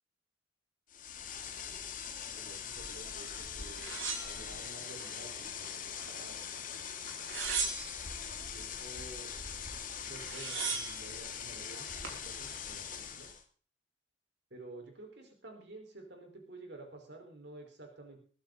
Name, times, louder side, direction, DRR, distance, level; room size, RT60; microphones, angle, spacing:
sound 1, 0.9-13.4, left 7 dB, 45° left, 1.9 m, -42 dB
voice 1, 2.4-6.9 8.5-9.3 10.1-13.3 14.5-18.2, right 2 dB, 55° right, 3 dB, 4.9 m, -51 dB
sound 2, 3.8-5.1 5.6-6.3 7.1-8.2 9.7-9.8 10.0-11.0 11.7-12.2, right 5 dB, 80° right, 4.9 m, -38 dB
22.0 x 11.5 x 4.1 m, 0.42 s
head